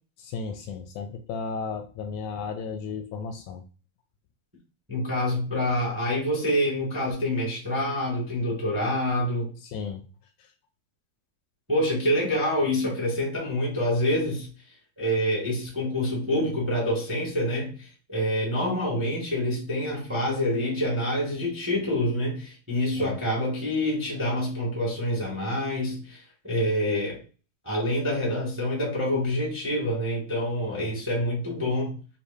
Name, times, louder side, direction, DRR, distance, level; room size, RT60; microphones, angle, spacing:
voice 1, 0.2-3.6 9.6-10.0 23.0-23.2 30.7-30.9, left 5 dB, 80° left, 1.9 m, -34 dB
voice 2, 4.9-9.5 11.7-14.5 15.0-27.2 27.6-31.9, left 1 dB, 10° right, 0.7 m, -27 dB
6.5 x 2.8 x 2.7 m
omnidirectional pair, 3.7 m